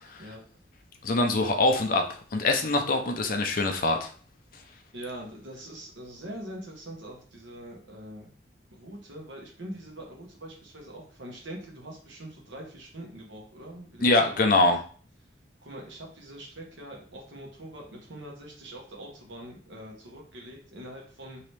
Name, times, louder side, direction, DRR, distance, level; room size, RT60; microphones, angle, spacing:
voice 1, 1.0-4.1 14.0-14.8, left 2 dB, 45° left, 5 dB, 0.5 m, -24 dB
voice 2, 4.9-8.3 8.7-14.3 14.6-14.7 15.6-21.4, right 1 dB, 80° right, 0 dB, 1.1 m, -43 dB
3.0 x 2.8 x 3.2 m, 0.44 s
head